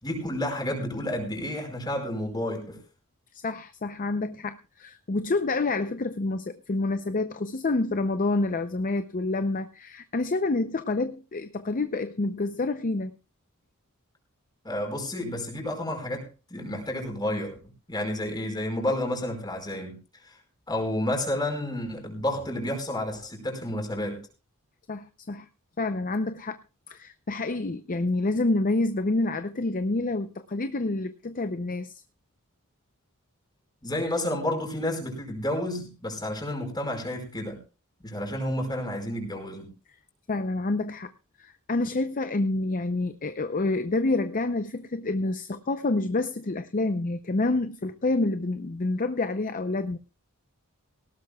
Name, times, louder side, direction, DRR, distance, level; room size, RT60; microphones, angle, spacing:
voice 1, 0.0-2.8 14.6-17.6 17.9-20.0 20.2-20.4 20.7-24.2 33.8-37.6 38.0-39.7, left 1 dB, 20° left, 3 dB, 5.0 m, -30 dB
voice 2, 3.3-13.1 24.9-25.5 25.8-26.6 26.9-32.0 40.3-41.1 41.4-50.0, left 2 dB, 40° left, 10 dB, 0.6 m, -28 dB
18.5 x 17.0 x 2.3 m, 0.33 s
head